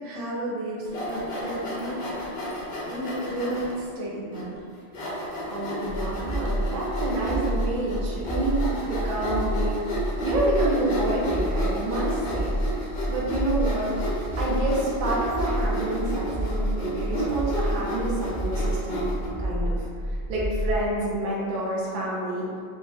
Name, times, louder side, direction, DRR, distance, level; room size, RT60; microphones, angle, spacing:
voice 1, 0.0-2.4 2.9-4.6, right 1 dB, 80° right, -6 dB, 1.0 m, -32 dB
Sawing, 0.8-3.7 4.3-4.4 4.9-19.3, equal, 55° left, 0.8 m, -33 dB
voice 2, 5.5-9.9 10.2-13.9 14.4-19.1 19.4-19.8 20.3-22.5, right 1 dB, 55° right, -5 dB, 0.6 m, -28 dB
sound 1, 5.8-20.8, equal, 10° left, 0.5 m, -29 dB
2.6 x 2.0 x 3.1 m, 2.2 s
omnidirectional pair, 1.2 m